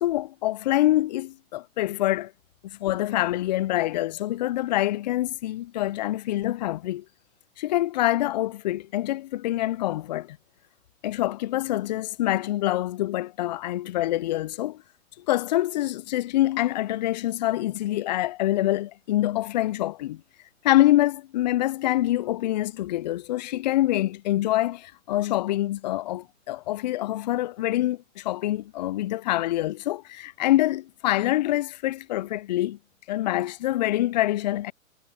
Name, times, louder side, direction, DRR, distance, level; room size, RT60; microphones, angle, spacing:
voice 1, 0.0-2.3 2.6-7.0 7.6-10.4 11.0-14.8 15.3-20.2 20.6-32.8 33.1-34.7, left 15 dB, 35° left, 0.5 m, -25 dB
figure-of-eight pair, 120°, 41 cm